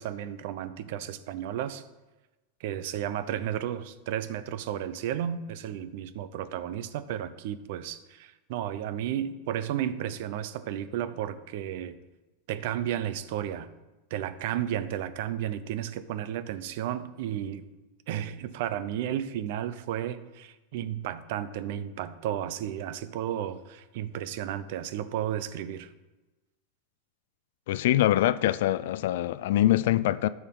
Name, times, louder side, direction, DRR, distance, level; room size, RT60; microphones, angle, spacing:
voice 1, 0.0-1.8 2.6-12.0 12.5-13.7 14.1-17.6 18.1-25.9, right 10 dB, 65° right, 0.6 m, -33 dB
voice 2, 27.7-30.3, left 13 dB, 75° left, 0.4 m, -24 dB
14.0 x 4.8 x 3.8 m
supercardioid pair, 130°, 0 cm